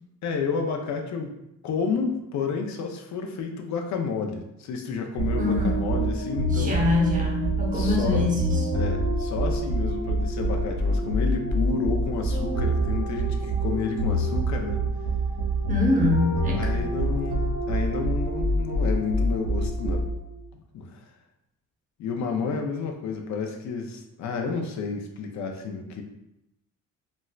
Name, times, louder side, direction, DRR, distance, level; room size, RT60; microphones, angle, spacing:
voice 1, 0.2-1.3 1.6-6.8 7.7-8.3 8.7-14.8 16.5-20.0 20.7-21.0 22.0-26.0, left 5 dB, 65° left, 3 dB, 0.5 m, -30 dB
sound 1, 5.2-20.3, right 1 dB, 85° right, 0.8 m, -26 dB
voice 2, 5.4-5.8 6.5-8.7 15.7-16.9, left 3 dB, 25° right, -1 dB, 0.8 m, -25 dB
4.2 x 2.1 x 2.3 m, 0.85 s
cardioid pair, 90°, 30 cm